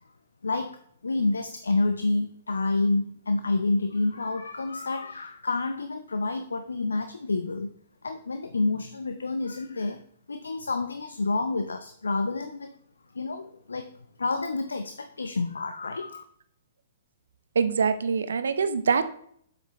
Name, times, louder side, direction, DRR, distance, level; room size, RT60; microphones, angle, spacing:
voice 1, 0.4-7.7 8.0-10.0 10.3-12.8 13.1-13.9 14.2-16.2, left 3 dB, 75° left, 8 dB, 0.5 m, -28 dB
voice 2, 17.6-19.1, right 5 dB, 65° right, 11 dB, 0.6 m, -24 dB
7.8 x 5.8 x 3.1 m, 0.65 s
figure-of-eight pair, 115°, 0 cm